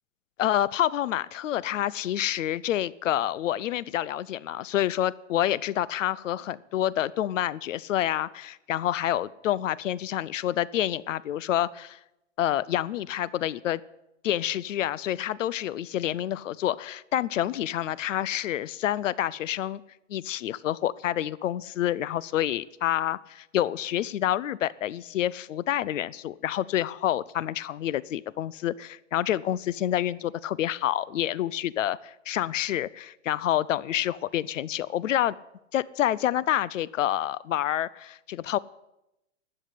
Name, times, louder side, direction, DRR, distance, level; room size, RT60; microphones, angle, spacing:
voice 1, 0.4-12.0 12.4-13.8 14.2-19.8 20.1-35.3 35.7-38.6, left 12 dB, 85° left, 21 dB, 0.6 m, -28 dB
12.5 x 8.6 x 9.3 m, 0.89 s
hypercardioid pair, 180°, 37 cm